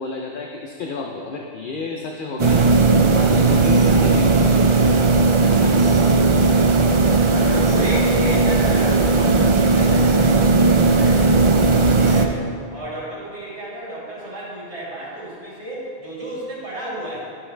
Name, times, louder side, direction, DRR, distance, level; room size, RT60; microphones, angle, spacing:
voice 1, 0.0-4.9 5.5-6.2 11.7-11.9, left 3 dB, 55° left, 1 dB, 0.7 m, -31 dB
sound 1, 2.4-12.3, right 3 dB, 45° right, 0.4 m, -16 dB
voice 2, 7.2-17.2, right 1 dB, 80° right, -9 dB, 2.9 m, -33 dB
12.5 x 5.7 x 3.3 m, 2.2 s
omnidirectional pair, 1.2 m